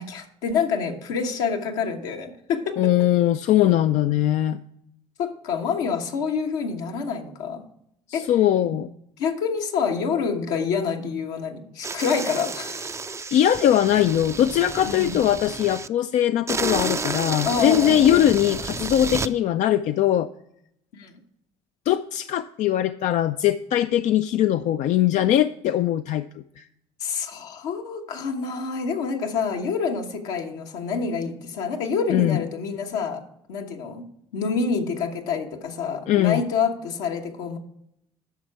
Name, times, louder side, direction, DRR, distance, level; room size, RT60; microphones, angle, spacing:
voice 1, 0.0-2.9 5.2-7.6 8.1-8.3 8.6-8.8 9.2-12.9 14.8-15.2 17.4-18.3 20.9-21.1 27.0-33.2 33.5-34.1 34.3-37.6, left 5 dB, 80° left, 2 dB, 1.2 m, -27 dB
voice 2, 2.8-4.6 8.1-8.9 13.3-20.3 21.9-26.2 26.6-26.7 32.1-32.4 36.1-36.4, left 11 dB, 60° left, 10 dB, 0.4 m, -21 dB
cartoon balloon deflate, 11.8-15.9 16.5-19.3, right 4 dB, 20° right, 0.4 m, -31 dB
10.5 x 6.6 x 4.6 m, 0.76 s
hypercardioid pair, 55°, 14 cm